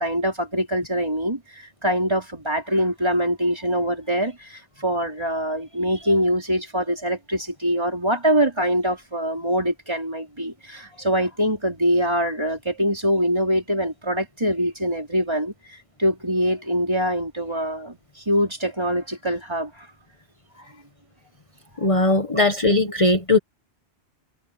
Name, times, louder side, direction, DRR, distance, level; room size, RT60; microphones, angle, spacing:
voice 1, 0.0-19.9 20.6-20.7 21.8-21.9 22.3-22.4 22.8-22.9, equal, 25° right, 4.4 m, -24 dB
voice 2, 21.8-23.4, left 2 dB, 30° left, 1.3 m, -19 dB
omnidirectional pair, 1.1 m